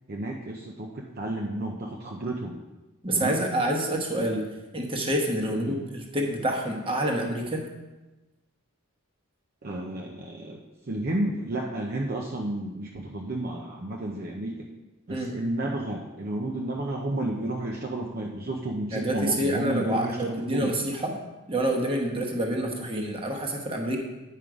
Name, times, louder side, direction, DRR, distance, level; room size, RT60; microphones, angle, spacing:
voice 1, 0.1-2.5 3.1-3.4 5.5-5.8 9.6-10.6 10.9-14.6 15.1-20.7, right 1 dB, 45° right, -1 dB, 0.7 m, -31 dB
voice 2, 3.0-4.4 4.7-7.6 15.1-15.3 18.9-21.1 21.5-24.0, right 1 dB, 25° right, 1 dB, 1.2 m, -27 dB
9.3 x 5.5 x 4.9 m, 1.1 s
head